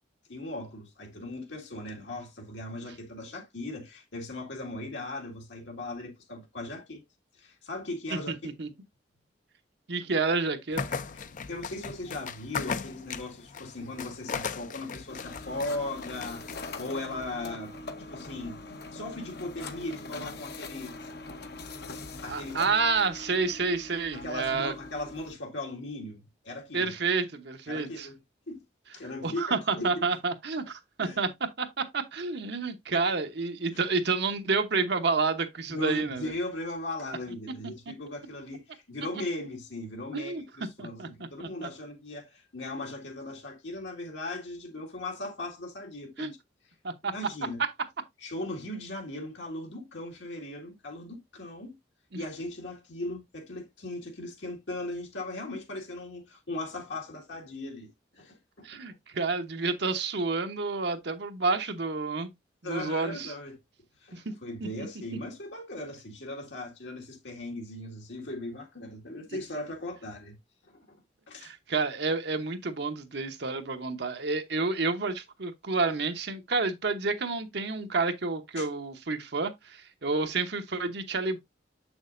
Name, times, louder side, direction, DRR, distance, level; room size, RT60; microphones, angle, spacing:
voice 1, 0.3-7.0 7.4-8.4 11.1-17.7 18.1-18.6 18.9-21.0 22.2-22.6 24.1-26.9 27.7-28.2 28.5-28.6 28.9-30.0 31.0-31.2 33.7-33.8 35.7-46.4 47.1-47.6 48.2-51.8 52.1-58.7 62.6-63.5 64.0-70.4 70.7-71.0 71.3-71.5 78.6-78.7, left 2 dB, 80° left, 2.1 m, -38 dB
voice 2, 9.9-10.8 22.3-24.7 26.7-28.1 29.2-31.3 31.6-36.3 40.1-40.4 40.8-41.1 41.4-41.7 46.2-46.3 46.8-47.1 52.1-52.2 58.6-62.3 62.6-63.3 64.1-64.3 64.8-64.9 71.4-81.4, right 4 dB, 65° right, 1.0 m, -29 dB
sound 1, 10.7-16.9, left 5 dB, 45° left, 0.5 m, -38 dB
sound 2, 15.1-25.3, left 3 dB, 60° left, 0.9 m, -42 dB
7.3 x 6.3 x 2.5 m
head